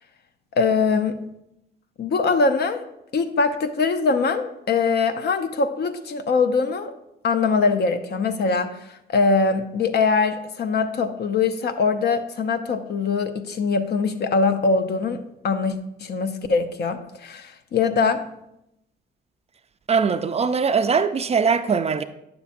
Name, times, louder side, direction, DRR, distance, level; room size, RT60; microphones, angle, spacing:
voice 1, 0.5-1.2 2.0-2.9 3.1-6.9 7.2-18.2, left 4 dB, 55° left, 0.6 m, -22 dB
voice 2, 19.9-22.0, right 5 dB, 30° right, 0.4 m, -21 dB
9.0 x 6.8 x 2.6 m
cardioid pair, 90°, 20 cm